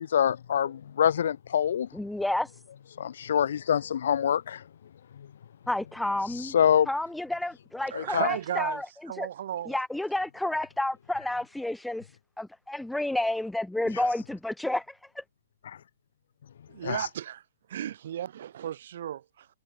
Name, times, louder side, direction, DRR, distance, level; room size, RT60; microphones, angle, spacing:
voice 1, 0.0-1.9 3.0-4.6 5.1-5.3 6.3-6.9 7.9-8.3 13.9-14.0 15.6-15.8 16.8-17.1, left 9 dB, 55° left, 7.0 m, -26 dB
voice 2, 1.9-2.5 5.7-6.5 6.9-8.8 9.2-9.3 9.7-12.1 12.4-15.2, left 1 dB, ahead, 3.0 m, -30 dB
voice 3, 7.9-9.8 16.7-17.4 17.7-19.5, right 10 dB, 50° right, 7.2 m, -34 dB
hypercardioid pair, 170°, 0 cm